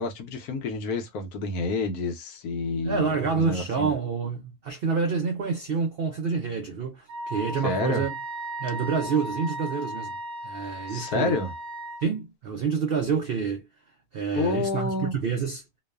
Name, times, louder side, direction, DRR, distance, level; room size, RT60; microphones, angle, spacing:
voice 1, 0.0-3.9 7.6-8.1 10.9-11.5 14.3-15.2, left 3 dB, 75° left, 1.2 m, -29 dB
voice 2, 2.8-8.1 8.6-10.2 10.4-11.4 12.0-13.7 14.1-15.6, right 5 dB, 85° right, 0.5 m, -28 dB
Wind instrument woodwind instrument, 7.1-12.0, right 1 dB, 65° right, 0.9 m, -36 dB
2.9 x 2.1 x 2.3 m
omnidirectional pair, 1.7 m